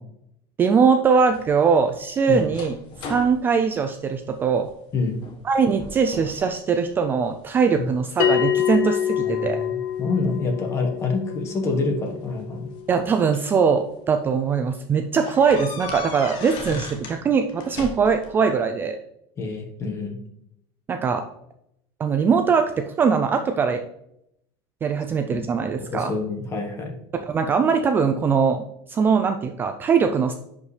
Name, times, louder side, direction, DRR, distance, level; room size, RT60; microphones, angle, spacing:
voice 1, 0.6-2.8 3.1-4.7 5.4-9.6 12.9-19.0 20.9-21.2 22.0-23.8 24.8-26.1 27.1-30.3, right 6 dB, 15° right, 7 dB, 0.4 m, -21 dB
sound 1, 1.3-4.7 5.1-5.5 5.8-6.5 6.9-7.6 8.2-9.7 10.8-10.9 12.2-13.6 14.1-14.2 14.5-14.6 15.2-17.2 17.5-18.3, left 4 dB, 40° left, 1.3 m, -38 dB
Bell, 8.2-13.2, left 10 dB, 85° left, 0.8 m, -26 dB
voice 2, 9.2-9.7 10.0-12.7 19.4-20.2 25.8-26.9, left 3 dB, 25° left, 4 dB, 1.3 m, -27 dB
10.5 x 5.2 x 3.3 m, 0.76 s
cardioid pair, 165°, 12 cm